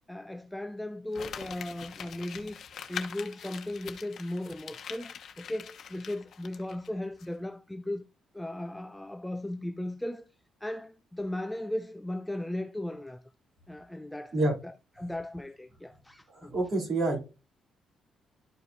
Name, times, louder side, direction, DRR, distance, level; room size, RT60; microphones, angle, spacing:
voice 1, 0.1-2.6 2.9-8.0 8.3-10.3 10.6-13.2 13.7-14.4 14.6-16.5, left 1 dB, 5° left, 0.5 m, -37 dB
Crumpling crinkling, 1.1-6.9 7.2-7.3, left 7 dB, 60° left, 1.0 m, -43 dB
voice 2, 16.3-17.2, right 2 dB, 50° right, 3.4 m, -27 dB
12.5 x 4.7 x 2.7 m
cardioid pair, 90°, 0 cm